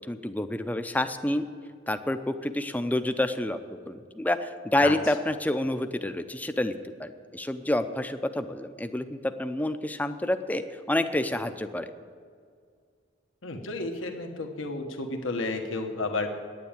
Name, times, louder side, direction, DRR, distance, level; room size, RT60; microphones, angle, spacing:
voice 1, 0.1-1.4 1.9-3.6 3.9-10.6 10.9-11.9, left 1 dB, 10° left, 9 dB, 0.5 m, -28 dB
voice 2, 13.4-16.4, left 3 dB, 85° left, 3 dB, 1.2 m, -32 dB
9.5 x 9.2 x 8.8 m, 2.1 s
head